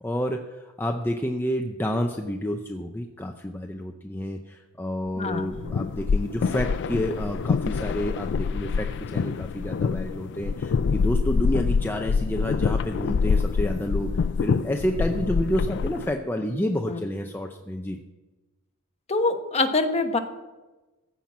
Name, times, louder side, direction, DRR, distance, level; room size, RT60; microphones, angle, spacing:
voice 1, 0.0-14.1 14.4-18.0, equal, 10° left, 3 dB, 0.6 m, -29 dB
voice 2, 5.2-5.7 16.9-17.0 19.1-20.2, left 3 dB, 30° left, 6 dB, 1.1 m, -25 dB
sound 1, 5.3-16.1, left 5 dB, 55° left, 0.3 m, -26 dB
15.0 x 5.9 x 8.6 m, 1.1 s
head